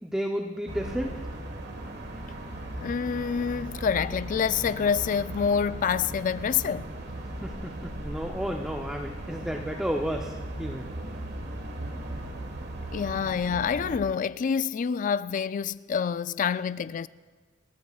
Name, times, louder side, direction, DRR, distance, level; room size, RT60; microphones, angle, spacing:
voice 1, 0.0-1.2 7.4-10.3 10.6-10.9, equal, 5° right, 0.6 m, -32 dB
sound 1, 0.7-14.0, right 1 dB, 60° right, 1.5 m, -37 dB
voice 2, 2.8-6.9 12.9-17.1, left 6 dB, 40° left, 0.3 m, -27 dB
29.5 x 14.0 x 2.4 m
head